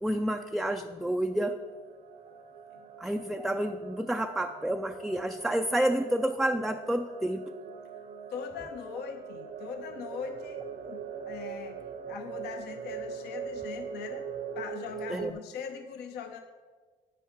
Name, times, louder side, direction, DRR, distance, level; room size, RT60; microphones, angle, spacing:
voice 1, 0.0-1.5 3.0-7.5 15.1-15.3, right 1 dB, ahead, 5 dB, 0.3 m, -29 dB
sound 1, 0.9-15.3, right 6 dB, 50° right, 0.6 m, -42 dB
voice 2, 8.3-11.8 12.1-14.3 14.5-16.4, left 7 dB, 75° left, 6 dB, 0.8 m, -41 dB
9.2 x 9.0 x 4.5 m, 1.4 s
cardioid pair, 110°, 17 cm